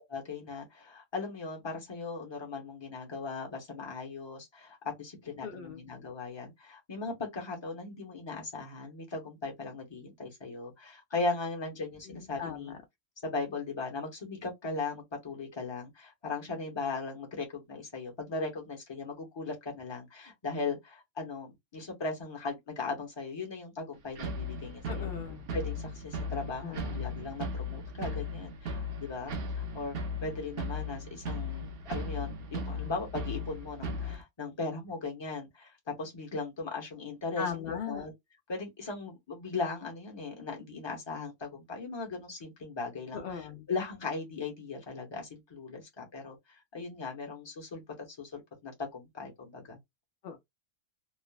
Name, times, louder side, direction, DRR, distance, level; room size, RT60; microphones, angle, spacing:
voice 1, 0.1-12.8 13.2-25.1 25.5-30.0 30.2-38.1 38.5-49.8, left 3 dB, 25° left, 0.8 m, -38 dB
voice 2, 5.4-5.8 12.1-12.8 24.9-25.5 26.6-27.0 37.4-38.1 43.1-43.7 50.2-50.4, left 7 dB, 60° left, 0.6 m, -39 dB
sound 1, 24.2-34.2, left 2 dB, 60° right, 0.7 m, -37 dB
3.2 x 2.0 x 2.3 m
omnidirectional pair, 1.3 m